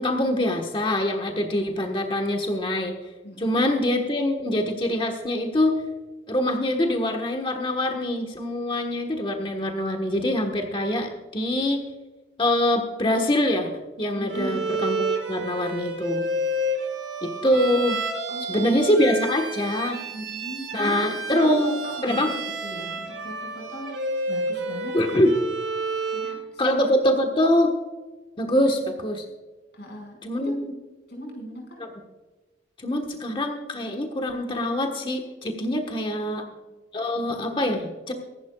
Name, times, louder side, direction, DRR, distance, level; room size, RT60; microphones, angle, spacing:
voice 1, 0.0-2.9 3.4-5.8 6.3-11.8 12.4-13.7 14.0-16.3 17.2-18.0 18.5-20.0 20.7-21.7 22.0-22.3 24.9-25.3 26.6-27.7 28.4-29.2 30.2-30.7 31.8-31.9 32.8-36.4 36.9-38.1, left 1 dB, 25° left, 4 dB, 1.3 m, -24 dB
voice 2, 3.2-3.7 14.1-14.7 18.3-19.0 20.1-22.3 22.6-24.0 24.3-25.3 26.1-26.7 29.7-30.5 31.1-31.8 36.1-36.7, equal, 60° left, 1 dB, 5.1 m, -39 dB
Bowed string instrument, 14.3-26.4, right 2 dB, 90° right, 5.2 m, -30 dB
24.0 x 11.5 x 2.4 m, 1.2 s
head